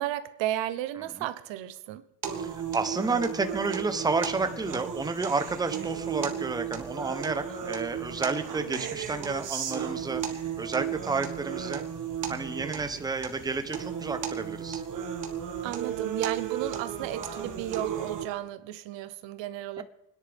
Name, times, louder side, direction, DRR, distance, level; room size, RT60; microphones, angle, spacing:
voice 1, 0.0-2.0 15.6-19.8, right 13 dB, 90° right, 0.9 m, -34 dB
sound 1, 2.2-18.2, right 8 dB, 45° right, 1.6 m, -34 dB
voice 2, 2.3-11.8 12.3-14.8 19.8-19.9, right 4 dB, 10° right, 0.7 m, -31 dB
28.5 x 10.5 x 3.4 m
cardioid pair, 135°, 44 cm